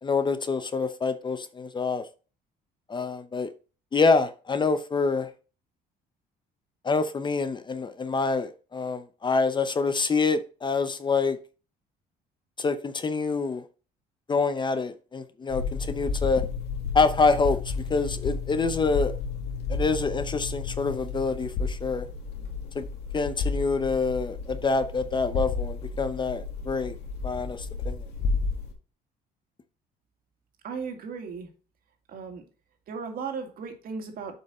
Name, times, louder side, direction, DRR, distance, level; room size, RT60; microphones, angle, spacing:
voice 1, 0.0-2.1 2.9-3.5 3.9-5.3 6.8-11.4 12.6-13.6 14.3-16.5 16.9-19.1 19.7-22.1 22.7-22.8 23.1-27.0 27.2-28.0, left 4 dB, 25° left, 0.7 m, -26 dB
sound 1, 15.5-28.7, left 4 dB, 85° left, 2.2 m, -32 dB
voice 2, 30.6-31.5 32.1-32.4 32.9-34.4, right 5 dB, 60° right, 2.2 m, -36 dB
7.9 x 5.6 x 4.2 m
cardioid pair, 110°, 17 cm